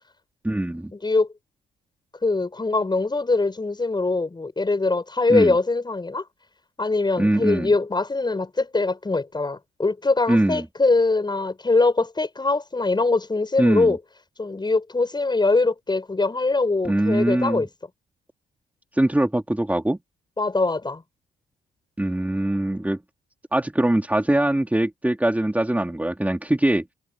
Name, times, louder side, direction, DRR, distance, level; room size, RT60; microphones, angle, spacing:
voice 1, 0.4-0.9 5.3-5.5 7.2-7.7 10.3-10.6 13.6-14.0 16.8-17.6 18.9-20.0 22.0-23.0 23.5-26.8, right 1 dB, 10° right, 3.3 m, -22 dB
voice 2, 2.2-6.2 6.8-14.0 14.4-17.7 20.4-21.0, left 3 dB, 20° left, 7.6 m, -22 dB
cardioid pair, 90°, 20 cm